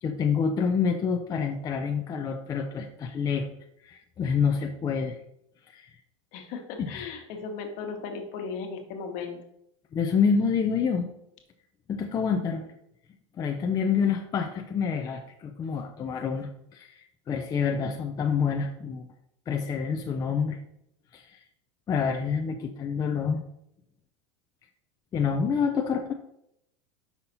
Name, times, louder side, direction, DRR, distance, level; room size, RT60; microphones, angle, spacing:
voice 1, 0.0-3.5 3.8-5.2 5.7-5.9 6.8-7.0 9.9-11.1 11.9-12.6 13.4-19.1 19.5-20.6 21.1-21.4 21.9-23.4 25.1-26.1, left 6 dB, 25° left, 5 dB, 0.4 m, -27 dB
voice 2, 6.3-9.4, left 5 dB, 55° left, 4 dB, 1.3 m, -36 dB
5.6 x 4.2 x 4.1 m, 0.77 s
supercardioid pair, 120°, 15 cm